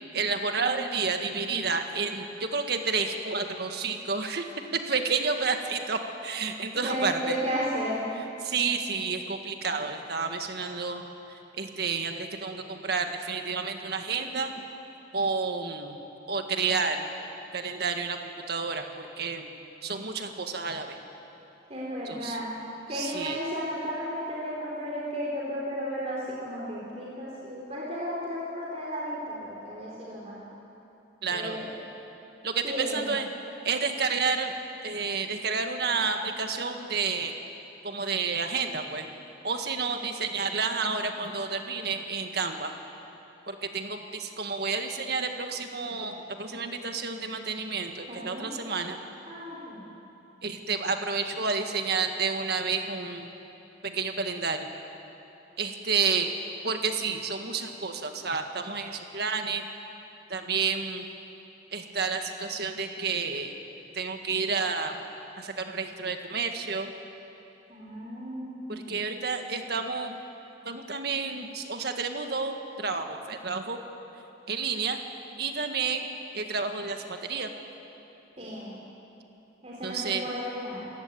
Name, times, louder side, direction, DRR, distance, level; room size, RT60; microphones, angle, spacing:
voice 1, 0.1-4.5 4.7-7.4 8.4-11.0 11.6-14.5 15.1-16.0 16.3-17.1 17.5-19.5 19.8-21.0 22.1-22.4 22.9-23.4 31.2-31.6 32.4-33.3 33.6-34.6 34.8-37.3 37.8-39.1 39.4-42.7 43.5-49.0 50.4-53.3 53.8-54.7 55.6-56.3 56.6-59.7 60.3-61.1 61.7-63.5 63.9-65.0 65.4-66.9 68.7-70.2 70.7-73.8 74.5-75.0 75.4-76.1 76.3-77.5 79.8-80.3, right 4 dB, 55° right, 5 dB, 1.8 m, -30 dB
voice 2, 6.7-8.1 21.7-22.5 22.9-30.4 31.3-31.7 32.6-33.1 48.1-48.6 49.3-49.8 67.7-68.9 78.4-78.8 79.6-80.9, equal, 35° right, -5 dB, 3.9 m, -34 dB
28.5 x 17.0 x 8.8 m, 3.0 s
head